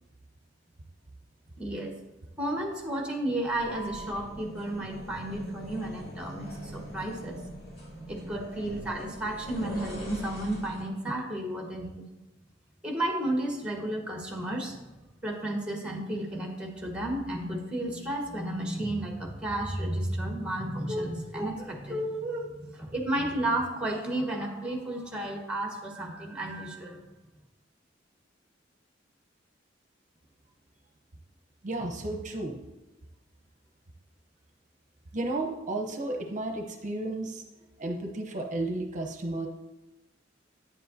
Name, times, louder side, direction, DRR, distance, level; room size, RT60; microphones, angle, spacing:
voice 1, 1.6-1.9 2.4-7.4 8.1-12.0 12.8-14.8 15.2-27.0, right 1 dB, 5° right, 1 dB, 1.3 m, -32 dB
sound 1, 3.4-10.9, equal, 55° left, 2.5 m, -42 dB
voice 2, 31.6-32.6 35.1-37.4 37.8-39.5, right 2 dB, 40° right, 3 dB, 0.8 m, -33 dB
9.7 x 7.4 x 2.7 m, 1.0 s
head